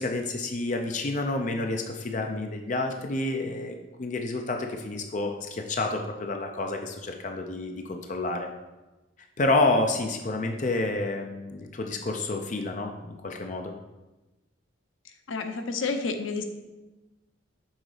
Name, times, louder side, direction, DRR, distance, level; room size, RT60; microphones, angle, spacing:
voice 1, 0.0-8.5 9.4-13.7, left 2 dB, 40° left, 3 dB, 0.5 m, -29 dB
voice 2, 15.0-16.4, left 4 dB, 80° left, 7 dB, 0.6 m, -30 dB
6.3 x 4.0 x 4.8 m, 1.1 s
head